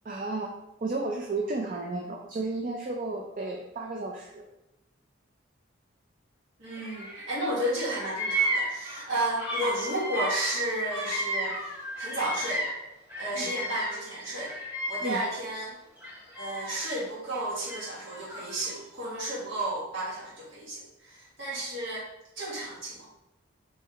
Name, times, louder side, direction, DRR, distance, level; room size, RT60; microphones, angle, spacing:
voice 1, 0.0-0.5 0.8-4.4 13.3-13.5 15.0-15.2, right 3 dB, 45° right, 0 dB, 0.4 m, -33 dB
voice 2, 6.6-11.6 12.0-12.7 13.2-14.5 14.9-15.7 16.4-22.1 22.3-23.1, right 1 dB, 70° right, -8 dB, 1.6 m, -32 dB
Bird vocalization bird call bird song, 6.7-7.5 7.7-12.8 13.1-15.5 16.0-16.9 17.7-18.8, right 1 dB, 10° right, 1.5 m, -33 dB
4.1 x 3.2 x 3.8 m, 0.90 s
head